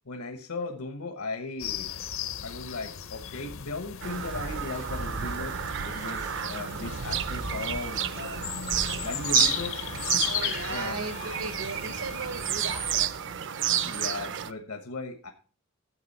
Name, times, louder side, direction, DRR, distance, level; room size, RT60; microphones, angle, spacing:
voice 1, 0.0-1.9 2.4-11.4 12.8-13.0 13.8-15.3, left 3 dB, 85° left, 6 dB, 1.2 m, -38 dB
sound 1, 1.6-13.1, left 10 dB, 60° left, 0.6 m, -36 dB
Bird vocalization bird call bird song, 4.0-14.5, right 9 dB, 55° right, 0.5 m, -31 dB
voice 2, 10.2-13.1, right 4 dB, 80° right, 12 dB, 1.1 m, -37 dB
13.5 x 8.0 x 4.1 m, 0.38 s
head